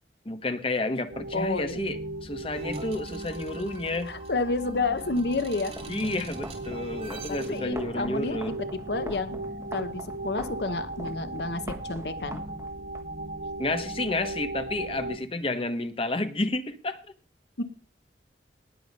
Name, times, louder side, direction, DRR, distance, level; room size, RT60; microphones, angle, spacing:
voice 1, 0.2-4.1 5.9-8.5 13.6-17.0, left 2 dB, 30° left, 10 dB, 1.1 m, -31 dB
sound 1, 1.1-15.2, right 2 dB, 65° right, 1.8 m, -37 dB
voice 2, 1.3-1.8 4.1-5.7 7.3-8.5 8.9-9.4 9.7-12.4 17.6-17.7, left 3 dB, 70° left, 11 dB, 1.0 m, -30 dB
sound 2, 2.5-7.6, right 2 dB, 35° right, 2.8 m, -45 dB
sound 3, 5.7-13.0, right 1 dB, 15° right, 1.4 m, -42 dB
19.0 x 7.0 x 5.4 m, 0.39 s
head